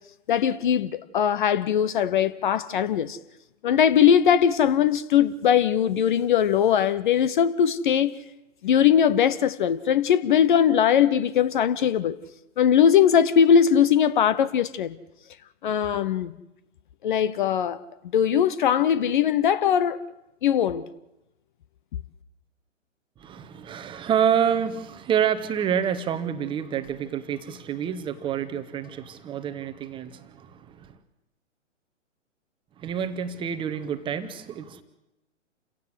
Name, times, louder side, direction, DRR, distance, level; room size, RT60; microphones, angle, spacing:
voice 1, 0.3-3.2 3.6-8.2 8.6-12.2 12.6-15.0 15.6-16.3 17.0-17.8 18.1-20.0 20.4-20.9, left 8 dB, 40° left, 0.9 m, -20 dB
voice 2, 23.2-31.0 32.8-34.8, right 8 dB, 15° right, 1.1 m, -28 dB
28.5 x 16.5 x 8.1 m
figure-of-eight pair, 120°, 38 cm